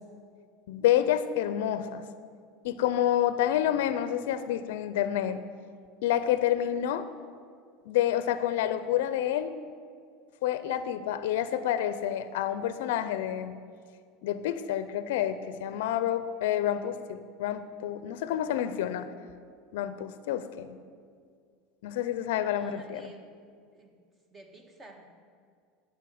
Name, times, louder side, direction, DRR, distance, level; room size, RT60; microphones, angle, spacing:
voice 1, 0.7-2.0 2.6-5.4 6.0-7.1 7.9-9.5 10.4-13.6 14.2-19.1 19.7-20.8 21.8-23.1, left 11 dB, 75° left, 12 dB, 0.5 m, -28 dB
voice 2, 22.4-23.3 23.7-23.9 24.3-25.1, right 2 dB, 25° right, 4 dB, 1.6 m, -52 dB
10.0 x 6.4 x 7.8 m, 2.1 s
supercardioid pair, 100°, 0 cm